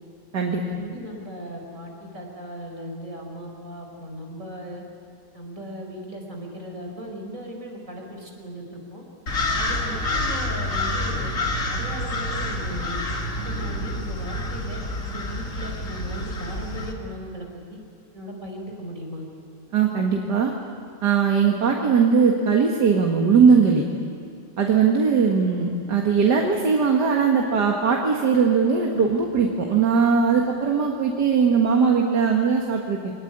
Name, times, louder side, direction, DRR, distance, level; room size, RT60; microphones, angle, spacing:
voice 1, 0.6-4.8 5.3-9.0 9.5-11.3 11.7-13.0 13.3-17.8 18.1-19.3, equal, 50° right, 1 dB, 4.9 m, -37 dB
sound 1, 9.3-16.9, left 1 dB, 50° left, 2.6 m, -28 dB
voice 2, 19.7-20.5 21.0-23.8 24.6-33.1, right 5 dB, 85° right, 1 dB, 2.4 m, -20 dB
24.5 x 20.0 x 9.9 m, 2.7 s
omnidirectional pair, 1.8 m